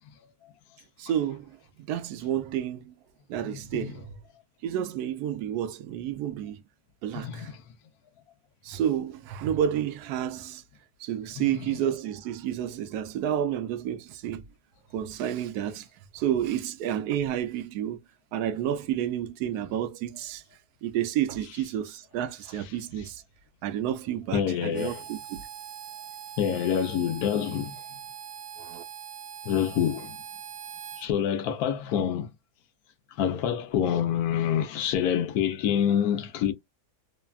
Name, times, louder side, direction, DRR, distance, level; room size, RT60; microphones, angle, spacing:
voice 1, 1.0-1.6 1.9-3.0 3.3-4.2 4.6-6.6 7.0-7.5 8.6-10.6 11.0-14.4 14.9-15.9 16.1-18.0 18.3-20.4 20.8-23.2 23.6-25.5 28.6-28.8, right 10 dB, 80° right, 1.1 m, -30 dB
voice 2, 3.5-4.0 7.2-7.6 11.4-11.6 24.3-25.0 26.4-27.7 29.5-30.2 31.0-32.3 33.2-36.5, left 9 dB, 75° left, 1.1 m, -27 dB
Harmonica, 24.7-31.1, right 9 dB, 60° right, 0.9 m, -42 dB
3.2 x 2.2 x 2.2 m
omnidirectional pair, 1.7 m